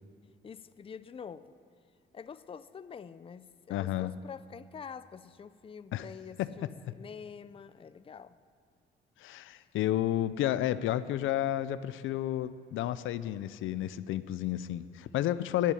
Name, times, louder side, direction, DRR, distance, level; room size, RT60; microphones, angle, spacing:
voice 1, 0.4-1.5 2.1-8.4, left 6 dB, 30° left, 14 dB, 0.5 m, -46 dB
voice 2, 3.7-4.1 5.9-6.1 6.4-6.5 9.2-15.7, left 13 dB, 85° left, 15 dB, 0.5 m, -31 dB
11.0 x 10.5 x 9.9 m, 2.2 s
cardioid pair, 90°, 20 cm